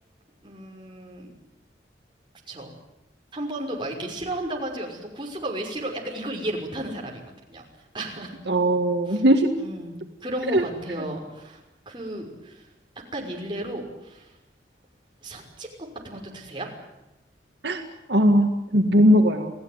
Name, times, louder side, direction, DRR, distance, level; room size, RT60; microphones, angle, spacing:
voice 1, 0.4-1.4 2.5-2.7 3.3-7.2 7.5-7.6 7.9-8.4 9.1-9.2 9.6-11.6 11.9-12.7 13.1-14.3 15.2-15.7 16.0-16.7, right 1 dB, 25° right, 0 dB, 5.8 m, -33 dB
voice 2, 8.5-9.5 10.5-10.6 17.6-17.8 18.1-19.5, equal, 70° right, 4 dB, 1.9 m, -19 dB
29.0 x 17.5 x 9.7 m, 0.93 s
head